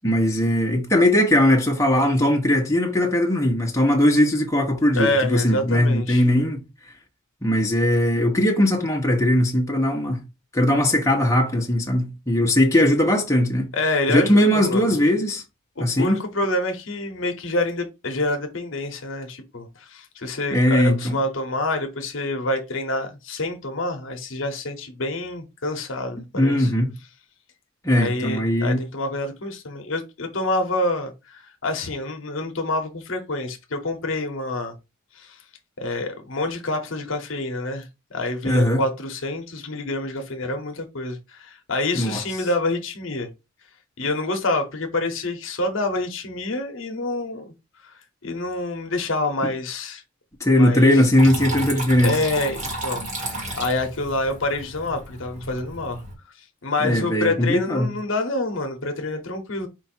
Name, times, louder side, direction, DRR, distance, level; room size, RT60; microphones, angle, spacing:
voice 1, 0.0-6.6 7.4-10.2 10.5-13.7 14.1-15.4 15.8-16.2 20.5-21.2 26.3-26.9 27.8-28.8 38.4-38.8 41.9-42.2 49.4-49.5 50.4-52.2 56.8-57.9, left 1 dB, 15° left, 0.9 m, -19 dB
voice 2, 4.9-6.2 13.7-14.9 15.8-26.7 27.9-34.7 35.2-35.3 35.8-37.9 38.1-43.3 44.0-47.5 48.2-50.0 50.5-50.9 52.0-53.1 53.5-56.0 56.6-59.7, left 2 dB, 65° left, 0.9 m, -27 dB
Water tap faucet / Trickle dribble, 51.2-56.2, right 1 dB, 35° right, 1.6 m, -33 dB
4.5 x 2.6 x 4.2 m
head